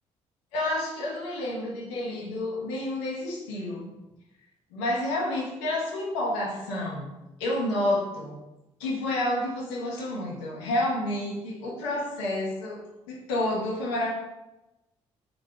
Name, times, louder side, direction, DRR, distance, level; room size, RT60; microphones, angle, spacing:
voice 1, 0.5-3.9 4.7-7.1 7.4-8.4 8.8-14.1, left 1 dB, 75° left, -3 dB, 0.9 m, -29 dB
3.8 x 2.4 x 4.4 m, 0.96 s
figure-of-eight pair, 45°, 15 cm